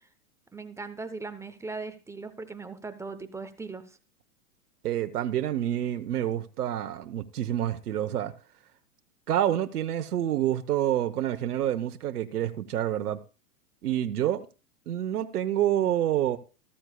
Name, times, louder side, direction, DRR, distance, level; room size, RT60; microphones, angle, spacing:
voice 1, 0.5-4.0, right 3 dB, 5° right, 0.7 m, -39 dB
voice 2, 4.8-8.3 9.3-13.2 13.8-14.5 14.9-16.4, right 11 dB, 80° right, 1.1 m, -28 dB
14.0 x 13.5 x 2.3 m
hypercardioid pair, 125°, 45 cm